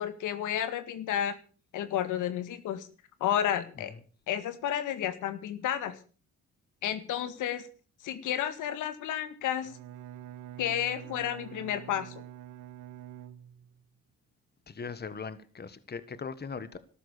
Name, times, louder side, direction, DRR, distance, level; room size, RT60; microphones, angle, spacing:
voice 1, 0.0-1.4 1.7-2.9 3.2-3.9 4.3-6.0 6.8-7.7 8.0-9.7 10.6-12.2, left 10 dB, 85° left, 1.9 m, -31 dB
Bowed string instrument, 9.6-13.8, right 12 dB, 85° right, 0.9 m, -46 dB
voice 2, 14.7-16.8, left 5 dB, 35° left, 1.6 m, -39 dB
13.5 x 12.5 x 6.8 m
cardioid pair, 90°, 30 cm